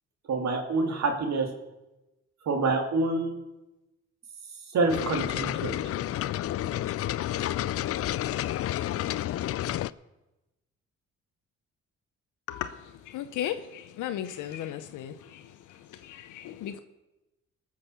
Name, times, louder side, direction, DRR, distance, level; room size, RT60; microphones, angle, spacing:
voice 1, 0.3-1.5 2.4-3.4 4.7-5.8, right 3 dB, 60° right, 4 dB, 2.5 m, -27 dB
sound 1, 4.9-9.9, left 13 dB, 50° left, 0.4 m, -30 dB
voice 2, 12.5-16.8, left 11 dB, 80° left, 10 dB, 0.8 m, -36 dB
18.5 x 6.5 x 7.0 m, 1.0 s
cardioid pair, 90°, 30 cm